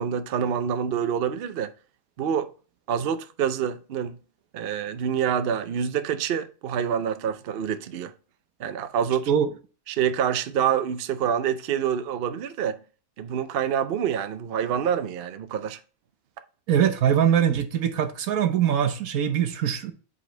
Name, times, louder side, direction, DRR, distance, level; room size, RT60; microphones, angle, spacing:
voice 1, 0.0-1.7 2.2-2.5 2.9-4.2 4.5-8.1 8.6-9.3 9.9-12.8 13.2-15.8, right 8 dB, 55° right, 0.7 m, -26 dB
voice 2, 16.7-19.9, right 9 dB, 80° right, 1.3 m, -22 dB
7.6 x 4.1 x 3.3 m
omnidirectional pair, 1.5 m